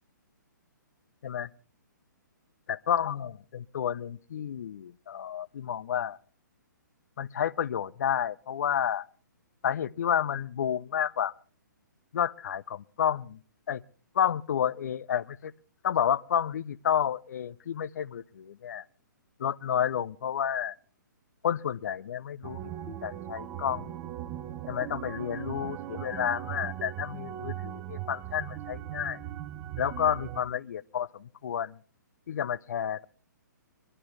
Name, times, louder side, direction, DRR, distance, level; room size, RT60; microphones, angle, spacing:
voice 1, 2.7-6.2 7.2-9.1 9.6-11.3 12.1-13.4 13.7-13.8 14.1-15.5 15.8-18.8 19.4-20.7 21.4-24.0 24.7-29.2 29.8-31.8 32.3-33.1, left 9 dB, 55° left, 0.6 m, -30 dB
sound 1, 22.4-30.4, right 12 dB, 25° right, 0.8 m, -39 dB
22.5 x 12.0 x 3.2 m
figure-of-eight pair, 130°, 11 cm